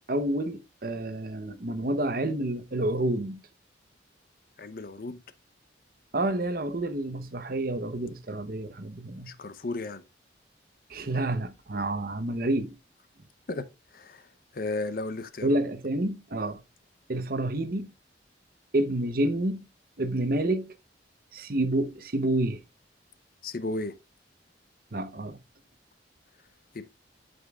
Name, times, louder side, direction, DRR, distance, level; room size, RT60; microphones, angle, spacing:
voice 1, 0.0-3.4 6.1-9.3 10.9-12.7 15.4-16.6 17.1-17.9 18.7-19.6 20.0-20.7 21.3-22.6 24.9-25.4, right 1 dB, 50° right, 0.8 m, -29 dB
voice 2, 4.6-5.2 9.3-10.0 13.5-13.6 13.9-14.3 14.5-15.6 23.4-23.9 26.7-26.8, left 2 dB, 50° left, 0.7 m, -34 dB
12.0 x 5.2 x 2.3 m
head